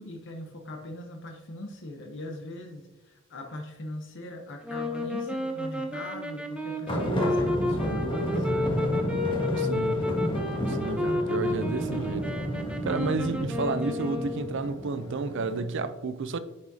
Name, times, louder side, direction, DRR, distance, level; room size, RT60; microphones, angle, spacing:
voice 1, 0.0-8.8, left 1 dB, 60° left, 0.7 m, -41 dB
sound 1, 4.6-14.7, left 2 dB, 5° right, 0.7 m, -31 dB
sound 2, 6.9-15.7, equal, 25° left, 1.4 m, -31 dB
voice 2, 9.6-10.1 10.7-12.3 12.8-16.4, right 4 dB, 60° right, 0.4 m, -31 dB
9.4 x 4.9 x 2.7 m
head